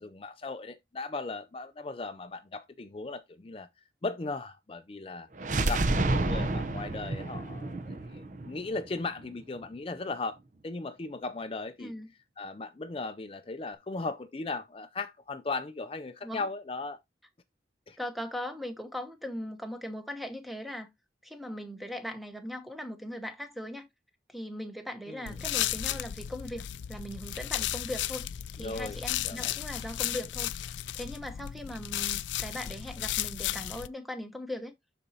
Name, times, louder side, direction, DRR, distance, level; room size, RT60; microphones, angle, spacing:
voice 1, 0.0-3.7 4.0-5.3 5.6-10.4 10.6-11.9 12.4-17.0 17.9-18.0 25.1-25.4 28.6-29.0 29.2-29.5, left 3 dB, 30° left, 0.4 m, -37 dB
sound 1, 5.4-9.2, right 2 dB, 45° right, 0.7 m, -30 dB
voice 2, 18.0-20.9 21.2-23.9 24.3-28.3 28.6-30.7 30.9-34.7, left 1 dB, ahead, 0.9 m, -39 dB
sound 2, 25.3-33.9, left 12 dB, 90° left, 0.4 m, -34 dB
12.0 x 4.2 x 2.7 m
head